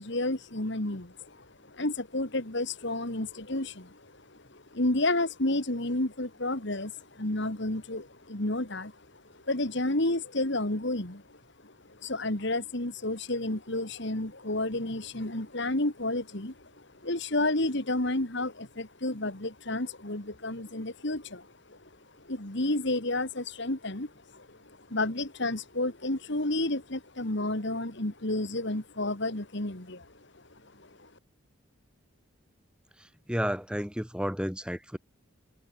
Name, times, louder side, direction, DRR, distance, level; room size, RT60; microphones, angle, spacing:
voice 1, 0.0-31.1, left 2 dB, 55° left, 2.3 m, -31 dB
voice 2, 33.3-35.0, equal, 5° right, 1.5 m, -31 dB
head